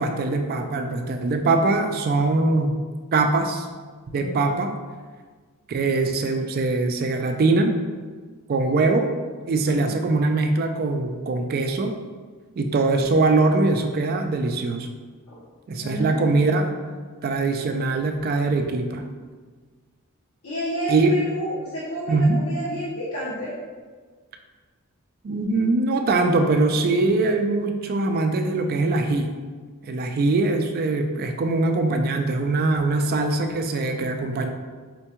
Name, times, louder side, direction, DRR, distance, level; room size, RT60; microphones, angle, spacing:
voice 1, 0.0-2.8 3.1-3.7 4.1-4.7 5.7-7.7 8.5-9.1 9.5-11.9 12.6-14.9 15.7-16.7 17.2-19.0 20.9-21.1 22.1-22.4 25.2-29.3 29.9-34.5, right 3 dB, 40° right, 5 dB, 0.3 m, -22 dB
voice 2, 4.1-4.4 15.3-15.4 15.7-16.6 20.4-23.5, right 1 dB, 75° left, -9 dB, 0.8 m, -31 dB
4.3 x 2.2 x 2.8 m, 1.5 s
head